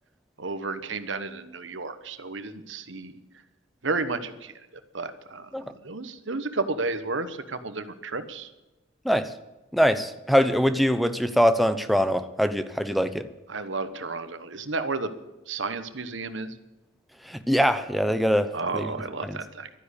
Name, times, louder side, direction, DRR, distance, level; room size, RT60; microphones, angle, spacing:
voice 1, 0.4-3.2 3.8-4.6 4.9-8.5 13.5-15.1 15.5-16.6 18.5-19.7, right 3 dB, 65° right, 11 dB, 1.2 m, -32 dB
voice 2, 9.7-13.3 17.2-18.9 19.2-19.4, equal, ahead, 10 dB, 0.7 m, -23 dB
12.5 x 10.0 x 8.4 m, 1.0 s
head